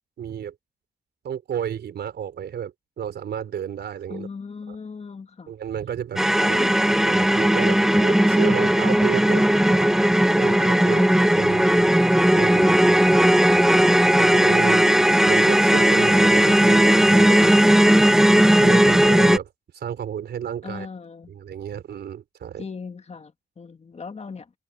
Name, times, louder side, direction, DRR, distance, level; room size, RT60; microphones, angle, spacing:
voice 1, 0.2-0.5 1.2-4.3 4.7-4.8 5.5-6.2 6.5-6.6 7.0-9.8 10.3-11.0 11.3-11.9 12.3-12.6 13.5-13.7 14.2-14.8 15.3-17.7 18.6-20.9 21.3-22.6, right 9 dB, 85° right, 4.7 m, -32 dB
voice 2, 4.1-5.5 6.4-6.8 7.9-8.1 9.7-10.0 10.8-11.1 14.7-14.8 20.6-21.3 22.6-24.5, left 5 dB, 40° left, 1.8 m, -38 dB
sound 1, 6.2-19.4, right 1 dB, 5° right, 0.4 m, -17 dB
cardioid pair, 90°, 17 cm